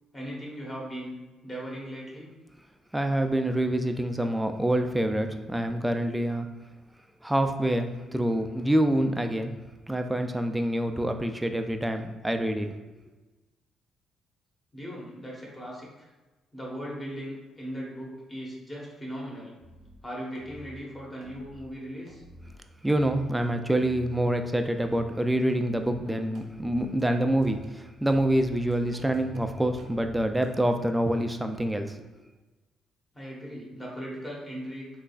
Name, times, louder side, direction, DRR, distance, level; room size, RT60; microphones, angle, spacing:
voice 1, 0.1-1.1 1.4-2.3 14.7-16.1 16.5-19.6 20.0-22.2 33.1-34.9, equal, 20° left, -3 dB, 1.1 m, -38 dB
voice 2, 2.9-6.5 7.2-9.5 9.9-12.7 22.8-32.0, right 1 dB, 10° right, 6 dB, 0.3 m, -26 dB
sound 1, 19.6-20.0 20.3-20.8 21.2-21.7 22.1-22.5 22.9-23.4 23.8-24.3 24.6-25.1 25.5-26.0 26.3-27.7 28.1-30.5, equal, 70° right, 0.6 m, -48 dB
3.6 x 3.2 x 2.4 m, 1.2 s
cardioid pair, 90°, 0 cm